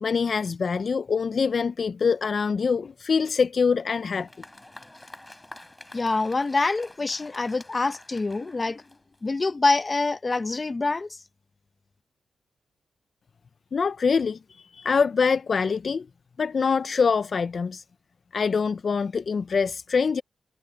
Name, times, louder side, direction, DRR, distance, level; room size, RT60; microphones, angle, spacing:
voice 1, 0.0-4.3 13.7-16.1 16.4-17.8 18.3-20.2, left 5 dB, 55° left, 0.5 m, -24 dB
Applause, 3.8-9.4, left 1 dB, 15° left, 7.0 m, -48 dB
voice 2, 5.9-8.8 9.2-11.2, left 3 dB, 35° left, 0.8 m, -25 dB
cardioid pair, 75°, 0 cm